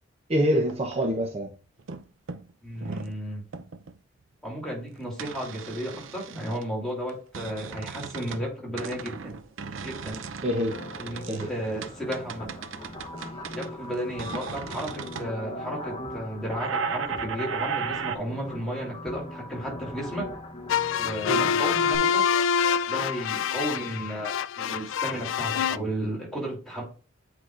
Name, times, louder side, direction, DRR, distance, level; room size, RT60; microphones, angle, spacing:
voice 1, 0.3-1.5 10.4-10.8 11.3-11.5 21.3-21.5, equal, 35° right, 1 dB, 0.8 m, -25 dB
sound 1, 0.5-1.5 1.8-2.0 2.3-3.2 3.5-4.0 5.2-6.6 7.1-8.5 8.8-15.3 16.5-18.2, right 6 dB, 90° right, 0.6 m, -36 dB
voice 2, 2.6-3.4 4.4-9.4 9.8-10.2 11.0-12.6 13.5-20.3 21.0-22.2 22.9-26.8, equal, 5° left, -3 dB, 2.9 m, -33 dB
sound 2, 10.7-22.0, left 1 dB, 30° left, 0.9 m, -40 dB
sound 3, 20.7-25.8, left 7 dB, 85° left, 0.3 m, -26 dB
8.2 x 4.8 x 2.5 m, 0.37 s
head